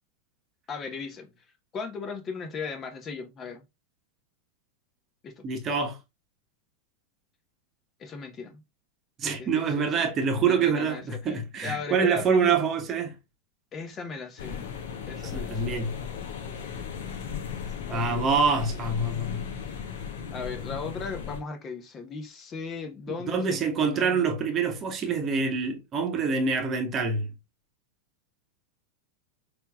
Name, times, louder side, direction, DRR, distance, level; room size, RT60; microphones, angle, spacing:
voice 1, 0.7-1.3 1.7-3.6 5.2-5.4 8.0-8.6 9.2-9.7 10.0-10.1 10.4-12.5 13.7-14.7 15.1-15.9 17.9-18.2 20.3-24.3, left 5 dB, 25° left, 1.1 m, -37 dB
voice 2, 5.4-6.0 9.2-13.1 15.2-15.9 17.9-19.4 23.3-27.3, right 5 dB, 30° right, 1.1 m, -26 dB
sound 1, 14.4-21.4, left 7 dB, 55° left, 1.0 m, -36 dB
5.7 x 3.3 x 2.3 m
figure-of-eight pair, 90°, 0 cm